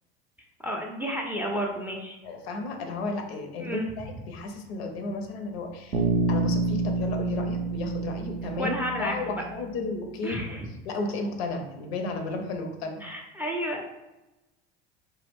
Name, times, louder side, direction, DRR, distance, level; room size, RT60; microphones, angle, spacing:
voice 1, 0.6-2.2 3.6-3.9 8.6-9.4 10.2-10.7 13.0-13.9, equal, 5° right, 0 dB, 0.3 m, -31 dB
voice 2, 2.2-8.7 9.0-10.6 10.9-13.0, left 3 dB, 80° left, 4 dB, 0.6 m, -33 dB
Bass guitar, 5.9-9.8, right 3 dB, 80° right, 0.6 m, -28 dB
2.2 x 2.1 x 3.4 m, 0.99 s
hypercardioid pair, 80°, 31 cm